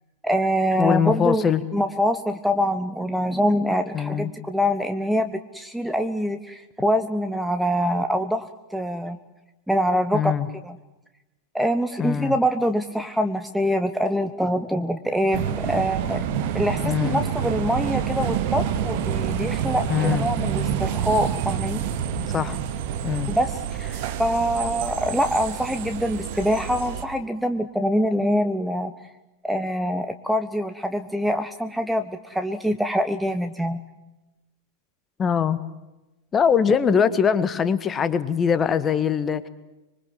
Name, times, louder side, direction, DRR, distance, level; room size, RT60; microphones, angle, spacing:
voice 1, 0.2-9.2 9.7-10.3 10.6-10.8 11.5-16.2 16.5-21.8 23.3-23.9 24.2-28.9 29.4-33.8, equal, ahead, 8 dB, 1.2 m, -24 dB
voice 2, 0.8-1.6 3.9-4.3 10.1-10.5 12.0-12.4 16.8-17.2 19.9-20.3 22.3-22.6 23.0-23.3 23.9-24.0 35.2-35.6 36.3-39.5, left 7 dB, 20° left, 13 dB, 1.7 m, -22 dB
sound 1, 15.3-27.0, right 8 dB, 50° right, 2.4 m, -27 dB
25.5 x 23.5 x 7.6 m, 1.0 s
figure-of-eight pair, 90°, 0 cm